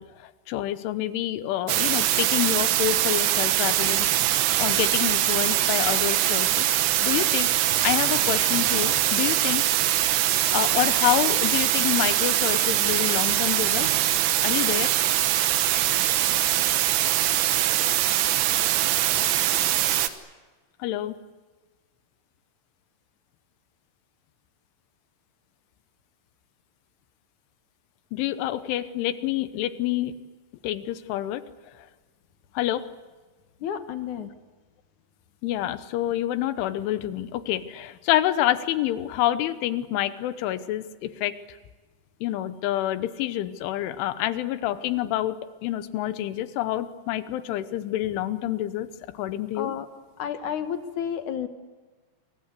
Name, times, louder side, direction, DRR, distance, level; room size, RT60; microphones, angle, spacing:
voice 1, 0.0-4.1 4.6-6.7 7.0-7.5 7.8-9.6 10.5-13.9 14.4-15.0 20.8-21.2 28.1-30.1 30.6-31.4 32.6-32.9 35.4-41.4 42.2-45.4 45.6-48.9 49.2-49.7, left 13 dB, 90° left, 12 dB, 3.5 m, -27 dB
sound 1, 1.7-20.1, right 13 dB, 75° right, 3.3 m, -23 dB
voice 2, 33.6-34.3 49.5-49.9 50.2-51.5, left 8 dB, 70° left, 8 dB, 1.9 m, -31 dB
28.5 x 23.0 x 8.3 m, 1.3 s
omnidirectional pair, 5.4 m